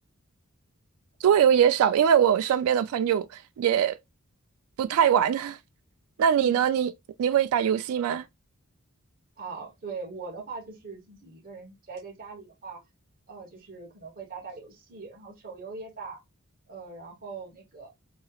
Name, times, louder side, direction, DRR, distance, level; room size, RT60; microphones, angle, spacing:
voice 1, 1.2-3.3 3.6-3.9 4.8-5.6 6.2-6.9 7.2-8.2, right 8 dB, 80° right, 0.3 m, -22 dB
voice 2, 9.4-12.8 13.3-16.2 16.7-17.9, right 4 dB, 40° right, 1.1 m, -41 dB
3.1 x 2.8 x 2.3 m
head